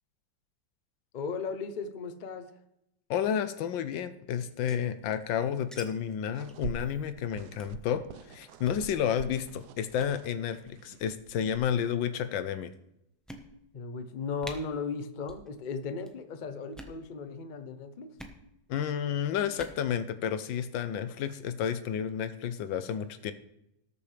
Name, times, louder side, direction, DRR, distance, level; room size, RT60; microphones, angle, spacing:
voice 1, 1.1-2.5 13.7-18.2, left 4 dB, 60° left, 9 dB, 0.4 m, -36 dB
voice 2, 3.1-12.7 18.7-23.3, left 8 dB, 80° left, 11 dB, 1.5 m, -31 dB
sound 1, 4.4-5.8 6.1-6.2 6.4-6.6 7.0-7.2 7.6-7.8 8.5-8.8 9.4-9.6 9.9-10.2 11.1-11.5 12.2-12.3 12.7-12.8 13.3-13.8 14.1-14.2 14.4-14.6 15.2-15.5 15.7-16.1 16.6-17.0 18.2-18.4 19.4-19.8, equal, ahead, 0.6 m, -47 dB
sound 2, 6.3-11.6, right 8 dB, 70° right, 1.0 m, -45 dB
19.0 x 7.1 x 3.4 m, 0.82 s
omnidirectional pair, 2.0 m